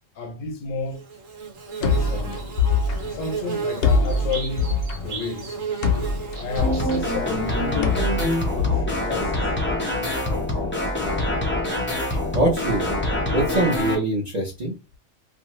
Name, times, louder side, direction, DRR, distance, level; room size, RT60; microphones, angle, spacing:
voice 1, 0.2-1.1 1.8-2.4 3.1-4.7 5.0-5.6 6.3-10.8, left 4 dB, 80° left, 1.0 m, -32 dB
Bird / Buzz, 0.9-8.6, right 5 dB, 80° right, 1.2 m, -35 dB
sound 1, 1.8-9.7, left 4 dB, 60° left, 0.7 m, -25 dB
sound 2, 6.6-13.9, left 1 dB, 10° left, 0.6 m, -25 dB
voice 2, 12.0-12.8 13.3-14.7, right 1 dB, 35° right, 0.8 m, -24 dB
2.6 x 2.3 x 3.0 m
omnidirectional pair, 1.3 m